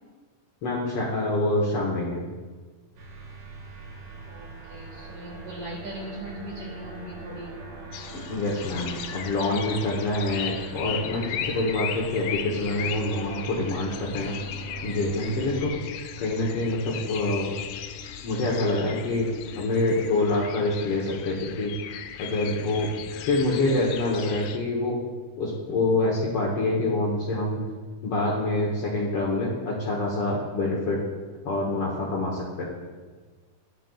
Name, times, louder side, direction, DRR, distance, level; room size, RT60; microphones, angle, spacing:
voice 1, 0.6-2.2 8.1-14.3 14.8-15.8 16.2-17.5 18.2-19.3 19.6-21.7 22.2-22.9 23.3-25.0 25.4-27.6 28.0-31.0 31.4-32.6, left 2 dB, 65° left, -3 dB, 1.5 m, -26 dB
sound 1, 3.0-15.7, right 3 dB, 85° right, 3.3 m, -41 dB
voice 2, 4.3-7.5, right 1 dB, 70° right, -8 dB, 3.4 m, -39 dB
sound 2, 7.9-24.6, left 9 dB, 80° left, 1.7 m, -37 dB
11.5 x 10.5 x 2.3 m, 1.4 s
omnidirectional pair, 3.8 m